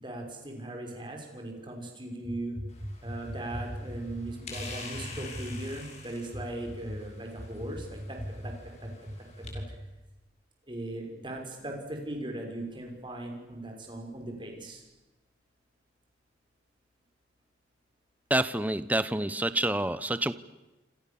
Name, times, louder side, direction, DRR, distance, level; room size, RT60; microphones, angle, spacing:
voice 1, 0.0-9.6 10.7-14.8, right 1 dB, 25° right, 2 dB, 5.8 m, -38 dB
sound 1, 2.7-9.5, left 3 dB, 35° left, 6.5 m, -47 dB
voice 2, 18.3-20.3, right 1 dB, 10° right, 14 dB, 0.8 m, -27 dB
27.5 x 27.5 x 7.2 m, 1.0 s
head